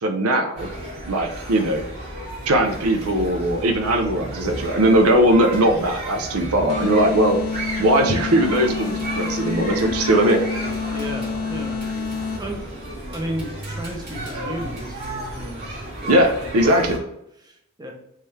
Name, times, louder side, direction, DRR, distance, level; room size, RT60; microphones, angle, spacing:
voice 1, 0.0-0.7 1.1-1.8 2.5-7.4 7.8-10.4 16.1-17.0, right 1 dB, 75° right, 5 dB, 0.6 m, -19 dB
sound 1, 0.6-17.0, right 1 dB, 50° right, 1.7 m, -33 dB
sound 2, 6.7-12.7, left 5 dB, 80° left, 0.4 m, -28 dB
voice 2, 10.9-11.8 12.1-12.6 13.1-15.0 15.3-15.7 16.0-16.4 17.4-17.9, equal, 20° right, 1 dB, 0.7 m, -33 dB
3.7 x 3.2 x 4.1 m, 0.80 s
head